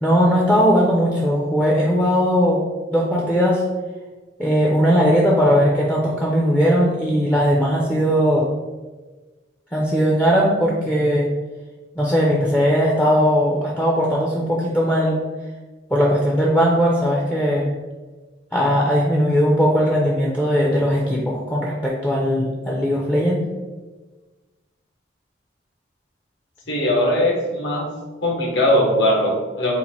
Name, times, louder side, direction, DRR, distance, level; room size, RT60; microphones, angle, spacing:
voice 1, 0.0-2.6 2.9-3.6 4.4-8.5 9.7-11.3 12.0-15.2 15.9-17.7 18.5-23.4, equal, 10° left, -4 dB, 0.4 m, -18 dB
voice 2, 26.7-27.9 28.2-29.8, left 1 dB, 75° left, -2 dB, 1.1 m, -20 dB
4.1 x 2.5 x 4.1 m, 1.3 s
head